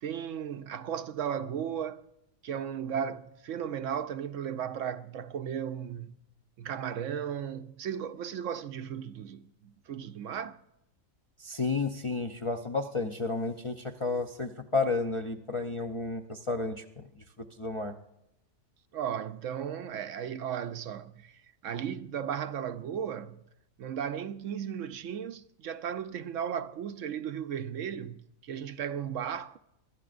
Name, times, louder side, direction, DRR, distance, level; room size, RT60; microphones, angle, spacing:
voice 1, 0.0-2.0 2.4-6.2 6.6-10.6 18.9-23.5 23.8-29.6, right 8 dB, 70° right, 0.9 m, -35 dB
voice 2, 11.4-17.0 17.6-17.9, left 3 dB, 40° left, 0.4 m, -31 dB
24.0 x 12.0 x 2.5 m
omnidirectional pair, 1.4 m